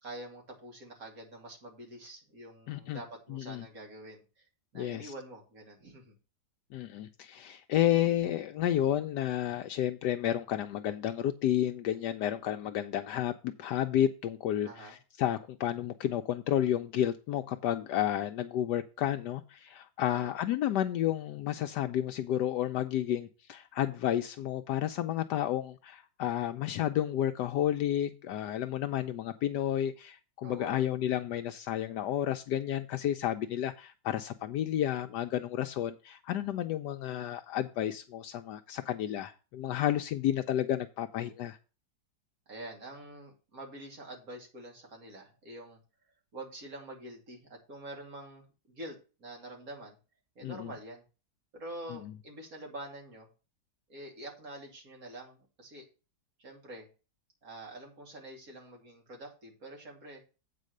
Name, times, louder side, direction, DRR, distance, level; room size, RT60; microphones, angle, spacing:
voice 1, 0.0-4.5 4.7-6.1 14.6-15.0 20.1-20.3 30.4-30.8 42.5-45.8 46.3-50.0 50.3-51.0 51.5-53.3 53.9-55.8 56.4-56.9 57.4-60.2, right 1 dB, 50° right, 3.1 m, -46 dB
voice 2, 2.7-3.0 3.3-3.6 4.7-5.1 6.7-41.6 50.4-50.7 51.9-52.1, left 11 dB, 75° left, 1.2 m, -31 dB
8.4 x 4.9 x 6.5 m
omnidirectional pair, 1.9 m